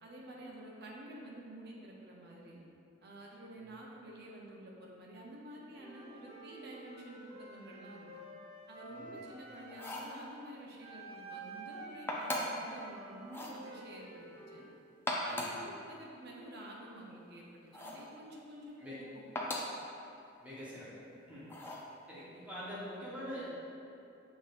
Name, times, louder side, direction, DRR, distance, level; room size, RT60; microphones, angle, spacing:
voice 1, 0.0-2.6 3.0-8.1 8.7-14.7 15.2-19.2, right 1 dB, 50° right, -2 dB, 0.7 m, -50 dB
Wind instrument woodwind instrument, 5.8-10.0 10.8-14.7, right 2 dB, 85° right, 1.0 m, -51 dB
voice 2, 8.9-9.2 15.3-15.5 18.8-19.0 20.4-20.9 21.3-21.7 22.1-23.5, equal, 5° right, -10 dB, 1.0 m, -45 dB
sound 1, 9.7-10.2 12.1-12.7 13.3-13.6 14.9-15.6 17.7-18.1 19.3-19.8 21.5-21.9, left 1 dB, 10° left, 0.3 m, -38 dB
6.0 x 3.5 x 2.5 m, 2.7 s
head